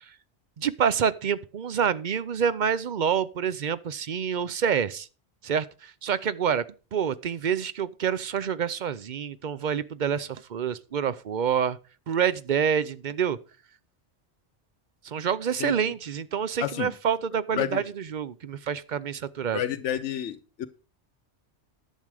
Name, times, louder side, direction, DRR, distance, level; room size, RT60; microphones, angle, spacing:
voice 1, 0.6-5.1 5.4-6.6 6.9-11.8 12.1-13.4 15.0-19.6, right 7 dB, 50° right, 0.6 m, -27 dB
voice 2, 16.6-16.9 17.6-17.8 19.5-20.7, left 10 dB, 80° left, 1.0 m, -30 dB
11.0 x 7.4 x 4.8 m
omnidirectional pair, 1.2 m